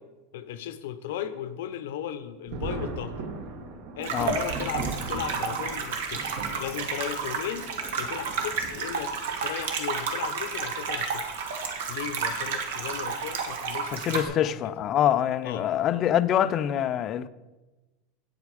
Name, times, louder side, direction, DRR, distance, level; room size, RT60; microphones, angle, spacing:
voice 1, 0.3-3.2 3.9-7.7 8.0-11.4 11.9-14.6 15.4-15.7, left 10 dB, 75° left, 0.7 m, -36 dB
Thunder, 2.5-9.5 10.5-10.6 12.1-12.3 12.7-12.8 14.8-15.0 15.7-16.0, right 3 dB, 50° right, 1.2 m, -39 dB
sound 1, 4.0-14.2, right 5 dB, 75° right, 1.4 m, -31 dB
voice 2, 13.9-17.3, left 10 dB, 30° left, 0.3 m, -25 dB
8.6 x 8.3 x 4.8 m
supercardioid pair, 170°, 0 cm